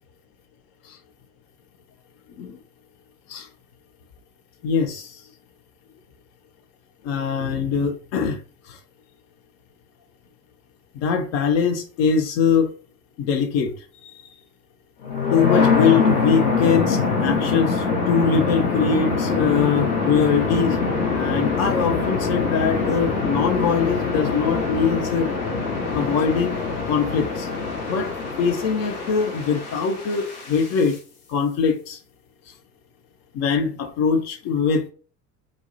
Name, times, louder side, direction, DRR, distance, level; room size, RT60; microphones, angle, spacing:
voice 1, 4.6-5.2 7.0-8.4 8.7-8.8 10.9-12.7 13.2-13.7 14.0-14.2 15.3-20.8 21.1-25.3 25.9-26.6 26.9-27.5 27.9-28.1 28.4-31.0 31.3-32.0 33.3-34.9, left 6 dB, 35° left, 0.5 m, -22 dB
sound 1, 15.0-30.9, left 4 dB, 65° left, 0.9 m, -24 dB
2.3 x 2.0 x 2.6 m
figure-of-eight pair, 70°, 48 cm